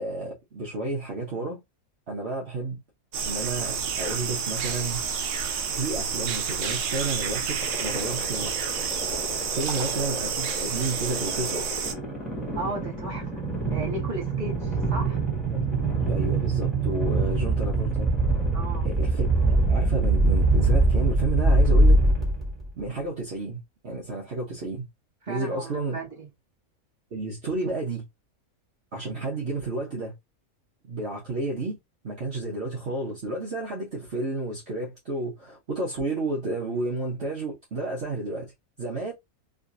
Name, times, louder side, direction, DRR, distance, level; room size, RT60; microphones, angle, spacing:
voice 1, 0.0-1.6 2.1-2.8 3.2-5.0 5.2-8.7 9.2-11.8 15.5-18.1 18.8-22.0 22.8-24.9 25.3-26.0 27.1-28.0 28.9-30.1 30.9-31.8 32.0-38.5 38.8-39.1, right 2 dB, 50° right, 1.2 m, -31 dB
sound 1, 3.1-11.9, right 6 dB, 75° right, 1.2 m, -29 dB
sound 2, 7.6-22.7, right 2 dB, ahead, 1.7 m, -24 dB
voice 2, 12.5-15.2 18.5-18.9 25.2-26.3, right 2 dB, 20° right, 1.6 m, -35 dB
3.8 x 2.8 x 2.5 m
omnidirectional pair, 1.5 m